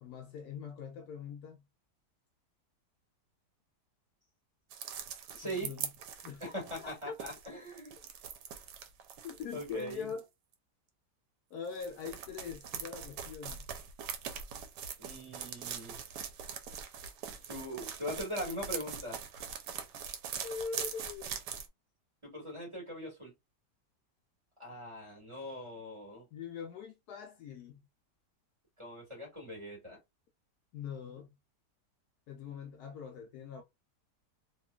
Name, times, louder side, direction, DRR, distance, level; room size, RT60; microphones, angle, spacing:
voice 1, 0.0-1.6 5.5-5.9 6.2-6.4 6.8-7.1 9.2-10.2 11.5-13.7 20.4-21.3 26.3-27.8 30.7-31.3 32.3-33.6, left 6 dB, 70° left, 1.1 m, -42 dB
sound 1, 4.7-10.2 11.7-21.7, right 7 dB, 90° right, 1.3 m, -42 dB
voice 2, 5.3-5.7 6.4-7.9 9.5-10.1 15.0-16.0 17.5-19.2 22.2-23.3 24.6-26.3 28.8-30.0, equal, 20° right, 1.6 m, -41 dB
3.1 x 2.9 x 2.3 m
omnidirectional pair, 1.8 m